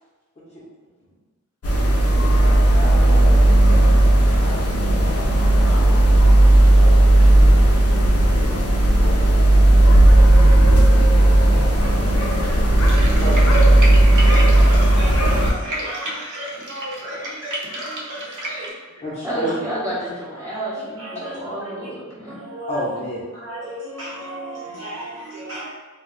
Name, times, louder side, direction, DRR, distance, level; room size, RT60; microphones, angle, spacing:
sound 1, 1.6-15.5, right 1 dB, 50° left, 0.5 m, -14 dB
voice 1, 2.7-3.5 4.3-5.0 13.2-14.1 19.0-19.5 22.7-23.2, equal, 20° left, -12 dB, 0.8 m, -30 dB
voice 2, 5.6-6.0 10.3-10.4 19.2-22.4, right 1 dB, 10° right, -11 dB, 0.9 m, -30 dB
voice 3, 11.7-12.6 12.9-13.1 13.9-18.7 20.7-21.4 22.3-22.9 23.3-25.7, right 1 dB, 40° right, -9 dB, 1.0 m, -34 dB
sound 2, 12.8-18.7, right 1 dB, 75° right, 0.5 m, -32 dB
2.3 x 2.1 x 3.7 m, 1.3 s
wide cardioid pair, 65°, 31 cm